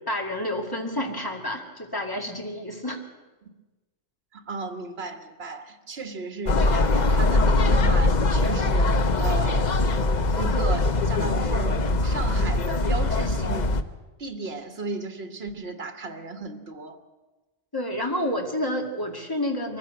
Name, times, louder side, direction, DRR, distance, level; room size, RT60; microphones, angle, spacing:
voice 1, 0.1-3.0 17.7-19.8, left 1 dB, 20° left, 2 dB, 2.3 m, -29 dB
voice 2, 4.3-9.9 10.4-13.7 14.2-17.0, right 3 dB, 65° right, 7 dB, 1.7 m, -34 dB
sound 1, 6.5-13.8, left 2 dB, 45° left, 0.9 m, -22 dB
23.0 x 15.0 x 7.8 m, 1.2 s
omnidirectional pair, 1.1 m